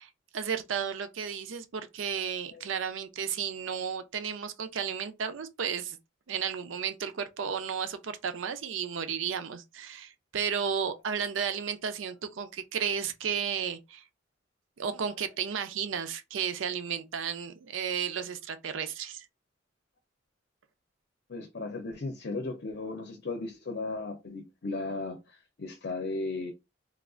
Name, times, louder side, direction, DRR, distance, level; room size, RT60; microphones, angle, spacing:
voice 1, 0.0-6.0 6.3-14.0 14.8-19.3, right 7 dB, 85° right, 0.5 m, -33 dB
voice 2, 21.3-26.5, left 3 dB, 60° left, 0.6 m, -36 dB
3.3 x 2.4 x 2.4 m
head